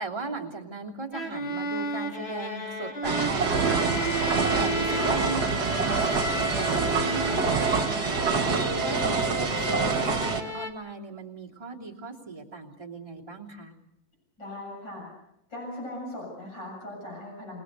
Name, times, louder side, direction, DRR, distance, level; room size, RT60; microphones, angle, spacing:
voice 1, 0.0-4.3 4.6-7.9 8.3-13.7, right 3 dB, 15° right, -2 dB, 2.9 m, -38 dB
sound 1, 1.1-10.7, equal, 35° left, 2.6 m, -36 dB
sound 2, 3.0-10.4, right 4 dB, 55° right, 2.4 m, -26 dB
Bowed string instrument, 3.3-8.9, right 2 dB, 50° left, 2.3 m, -32 dB
voice 2, 14.4-15.1 15.5-17.6, left 1 dB, 70° left, -2 dB, 8.3 m, -39 dB
29.0 x 19.5 x 6.7 m, 0.79 s
omnidirectional pair, 2.1 m